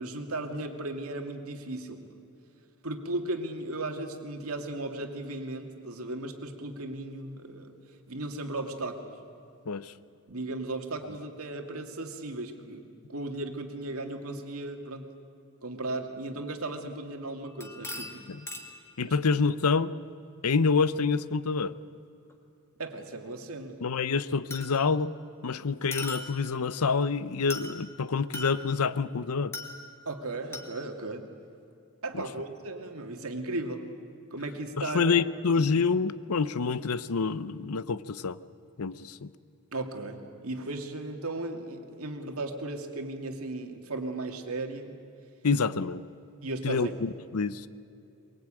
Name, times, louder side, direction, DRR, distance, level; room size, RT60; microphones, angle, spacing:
voice 1, 0.0-2.0 2.8-7.7 8.1-9.1 10.3-12.8 13.1-15.1 15.6-18.3 19.0-19.2 22.8-23.8 30.1-31.3 32.0-33.9 34.3-35.2 35.6-35.7 39.7-45.0 46.4-46.9, right 2 dB, 75° right, 4 dB, 2.3 m, -36 dB
sound 1, 17.5-18.9 22.3-22.4 24.5-25.0 25.9-26.6 27.5-27.9 28.3-28.9 29.5-30.1 30.5-30.8, left 2 dB, 10° left, 1.8 m, -40 dB
voice 2, 19.0-19.9 20.4-21.8 23.8-25.1 25.4-29.5 32.1-32.2 34.8-38.4 38.8-39.3 45.4-46.0 46.6-47.7, left 5 dB, 85° left, 16 dB, 0.7 m, -27 dB
23.5 x 22.0 x 8.9 m, 2.6 s
head